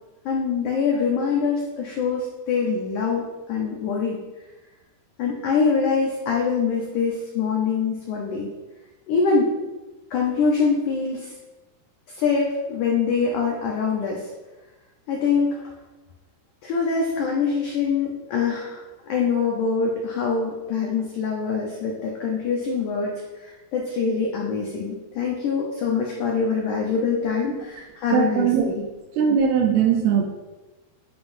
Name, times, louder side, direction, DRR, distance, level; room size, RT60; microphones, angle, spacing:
voice 1, 0.2-4.2 5.2-8.5 9.1-9.6 10.1-11.3 12.1-14.3 15.1-15.6 16.6-18.8 19.1-28.8, left 5 dB, 85° left, -2 dB, 1.7 m, -24 dB
voice 2, 28.1-28.7 29.2-30.2, right 7 dB, 80° right, 3 dB, 2.5 m, -20 dB
9.9 x 5.9 x 2.6 m, 1.1 s
omnidirectional pair, 4.7 m